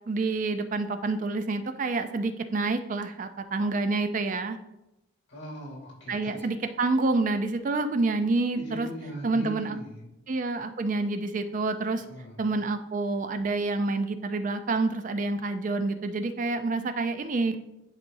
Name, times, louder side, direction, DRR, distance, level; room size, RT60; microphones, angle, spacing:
voice 1, 0.1-4.6 6.1-8.9 9.2-9.8 10.3-12.0 12.4-17.6, right 3 dB, 40° right, 9 dB, 0.4 m, -28 dB
voice 2, 5.3-6.5 8.5-10.0 12.0-12.3, equal, 60° left, -2 dB, 2.5 m, -40 dB
10.5 x 4.2 x 2.7 m, 0.90 s
head